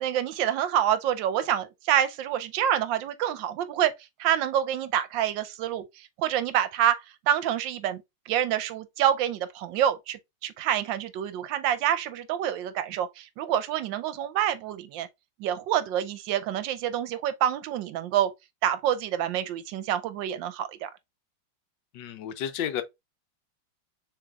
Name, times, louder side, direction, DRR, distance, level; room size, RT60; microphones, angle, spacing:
voice 1, 0.0-3.9 4.2-15.1 15.4-18.3 18.6-20.9, right 10 dB, 75° right, 1.2 m, -27 dB
voice 2, 21.9-22.8, left 10 dB, 75° left, 1.2 m, -31 dB
6.9 x 3.2 x 2.3 m
omnidirectional pair, 2.1 m